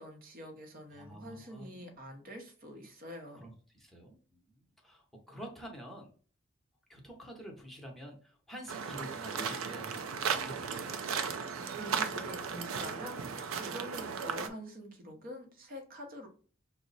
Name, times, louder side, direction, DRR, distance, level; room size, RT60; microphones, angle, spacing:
voice 1, 0.0-3.4 11.5-16.3, equal, 45° right, 3 dB, 0.8 m, -46 dB
voice 2, 0.9-2.0 3.3-6.1 6.9-11.0, right 1 dB, ahead, 0 dB, 0.8 m, -48 dB
sound 1, 8.7-14.5, right 6 dB, 90° right, 0.5 m, -36 dB
6.0 x 2.1 x 4.0 m, 0.41 s
head